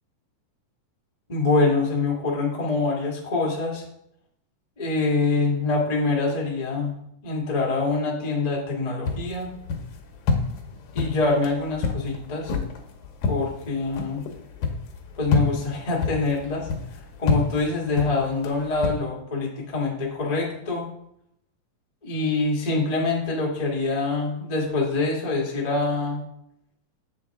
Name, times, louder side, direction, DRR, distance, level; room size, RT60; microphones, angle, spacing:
voice 1, 1.3-3.8 4.8-7.0 7.2-9.5 10.9-12.5 13.3-14.2 15.1-16.7 17.2-20.8 22.0-26.2, left 3 dB, 30° left, -2 dB, 0.7 m, -25 dB
sound 1, 9.0-19.0, left 3 dB, 75° left, 2.4 m, -29 dB
7.8 x 6.8 x 3.6 m, 0.76 s
omnidirectional pair, 3.8 m